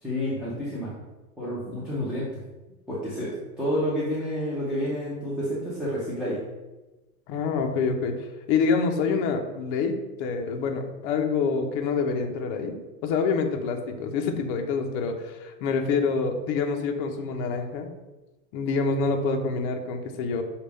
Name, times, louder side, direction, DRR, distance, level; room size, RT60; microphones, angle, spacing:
voice 1, 0.0-0.9 1.4-2.4 2.9-6.4, equal, ahead, -10 dB, 0.7 m, -29 dB
voice 2, 7.3-12.8 13.0-17.9 18.5-20.4, left 5 dB, 40° left, 4 dB, 0.6 m, -26 dB
6.4 x 2.4 x 3.4 m, 1.1 s
supercardioid pair, 135°, 46 cm